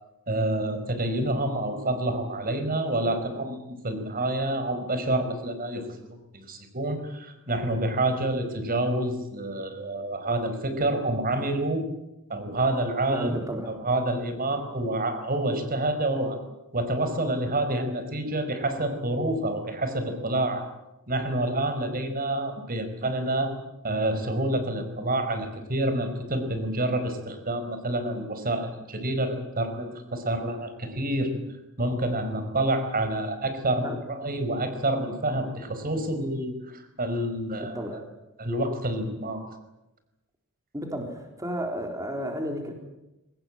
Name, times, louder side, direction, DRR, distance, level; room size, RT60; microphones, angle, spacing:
voice 1, 0.3-11.8 12.3-13.4 13.7-16.4 16.7-20.6 21.1-23.5 23.8-31.3 31.8-37.8 38.4-39.4, right 1 dB, 40° right, 8 dB, 5.0 m, -28 dB
voice 2, 13.1-13.7 33.8-34.0 37.6-38.0 40.7-42.7, equal, 15° right, 3 dB, 3.8 m, -32 dB
23.5 x 20.0 x 9.0 m, 0.97 s
head